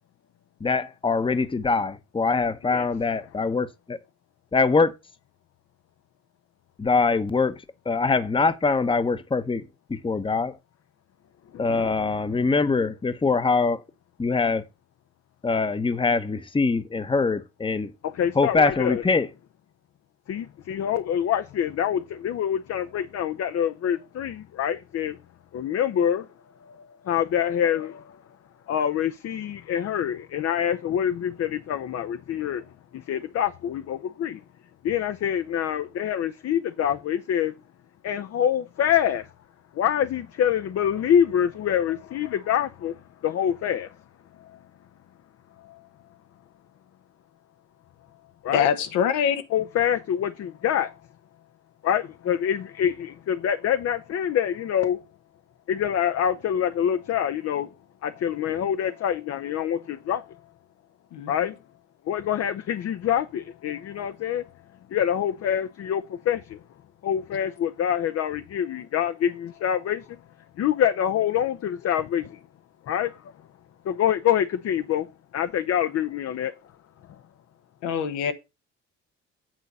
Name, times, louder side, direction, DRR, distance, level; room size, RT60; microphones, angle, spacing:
voice 1, 0.6-4.0 4.5-4.9 6.8-7.5 7.8-9.6 9.9-10.6 11.6-13.8 14.2-14.6 15.4-17.9 18.4-19.3, left 4 dB, 15° left, 0.9 m, -23 dB
voice 2, 11.5-12.1 18.0-19.0 20.3-25.1 25.5-26.2 27.1-28.0 28.7-32.6 32.9-34.4 34.8-37.5 38.0-39.2 39.8-42.9 43.2-43.9 48.4-48.7 49.5-50.9 51.8-55.0 55.7-57.7 58.0-60.2 61.3-61.5 62.1-64.4 64.9-66.6 67.0-70.0 70.6-72.4 72.9-73.1 73.9-75.1 75.3-76.5, left 9 dB, 50° left, 0.8 m, -25 dB
voice 3, 48.5-49.4 61.1-61.5 77.8-78.3, left 8 dB, 75° left, 1.3 m, -24 dB
9.1 x 4.0 x 6.7 m
hypercardioid pair, 65°, 30 cm